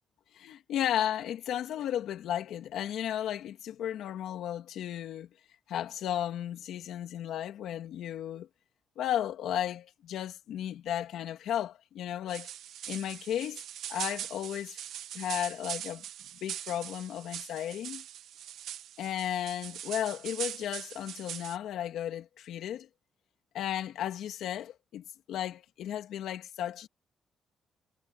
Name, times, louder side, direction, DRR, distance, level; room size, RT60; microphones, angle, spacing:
voice 1, 0.3-5.3 5.7-8.5 9.0-12.5 12.9-13.6 13.9-14.8 15.1-16.0 16.4-18.0 19.0-22.9 23.5-26.9, left 11 dB, 85° left, 3.0 m, -34 dB
sound 1, 12.3-21.6, right 11 dB, 90° right, 1.6 m, -41 dB
cardioid pair, 175°, 0 cm